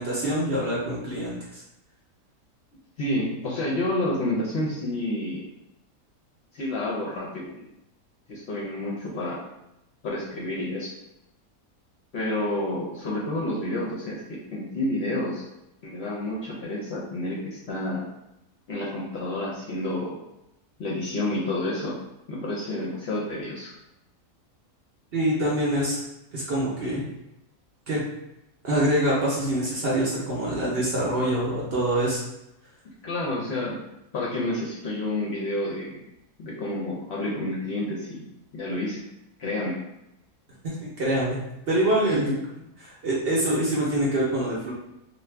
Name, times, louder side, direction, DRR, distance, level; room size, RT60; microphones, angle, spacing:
voice 1, 0.0-1.6 25.1-26.0 26.3-27.0 27.9-28.0 28.6-32.2 40.6-41.4 41.7-42.3 42.8-44.7, right 1 dB, 55° right, -5 dB, 0.7 m, -25 dB
voice 2, 3.0-5.5 6.5-7.6 8.3-9.4 10.0-10.9 12.1-15.4 15.8-18.0 18.7-20.2 20.8-22.0 22.3-23.7 33.0-33.8 34.1-36.0 36.4-38.3 38.5-39.0 39.4-39.8 42.1-42.4, left 1 dB, 60° left, -4 dB, 0.7 m, -29 dB
2.6 x 2.2 x 3.3 m, 0.88 s
omnidirectional pair, 1.5 m